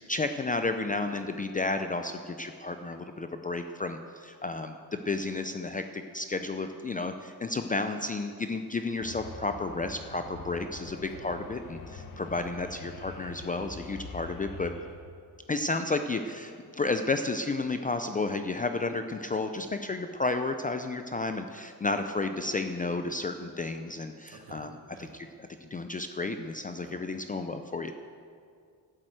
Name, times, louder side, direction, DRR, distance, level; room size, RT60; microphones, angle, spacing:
voice 1, 0.1-14.7 15.5-24.7 25.0-25.3 25.6-27.9, left 3 dB, 20° left, 7 dB, 0.4 m, -32 dB
sound 1, 9.0-15.0, left 4 dB, 50° left, 1.2 m, -44 dB
voice 2, 10.9-11.3 12.3-12.5 24.3-25.2 26.8-27.0, right 4 dB, 60° right, 1 dB, 2.0 m, -51 dB
12.0 x 7.7 x 7.9 m, 2.2 s
cardioid pair, 150°, 41 cm